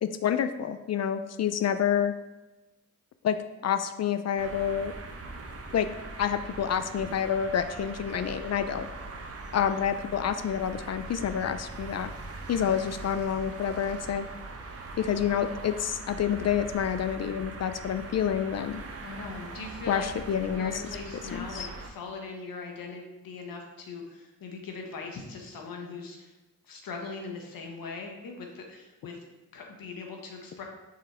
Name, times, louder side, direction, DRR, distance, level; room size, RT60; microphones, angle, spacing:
voice 1, 0.0-2.1 3.2-3.4 3.6-4.9 5.7-5.9 6.2-8.9 9.5-12.1 12.5-14.3 15.0-18.8 19.9-20.7 21.3-21.7, left 8 dB, 50° left, 10 dB, 0.4 m, -28 dB
sound 1, 4.4-21.9, right 3 dB, 45° right, 0.9 m, -41 dB
voice 2, 19.0-20.1 20.5-26.3 26.6-30.6, left 4 dB, 85° left, 1 dB, 1.3 m, -40 dB
6.3 x 4.0 x 4.3 m, 1.0 s
cardioid pair, 100°, 34 cm